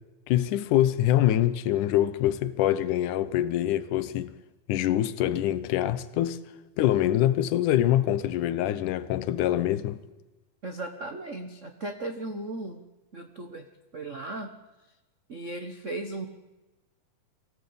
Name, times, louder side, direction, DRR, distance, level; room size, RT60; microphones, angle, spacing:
voice 1, 0.3-4.3 4.7-6.4 6.8-10.0, left 12 dB, 85° left, 2.4 m, -24 dB
voice 2, 10.6-12.8 13.1-13.6 13.9-14.5 15.3-16.3, right 2 dB, 65° right, 0.7 m, -36 dB
24.0 x 17.5 x 8.8 m
omnidirectional pair, 3.5 m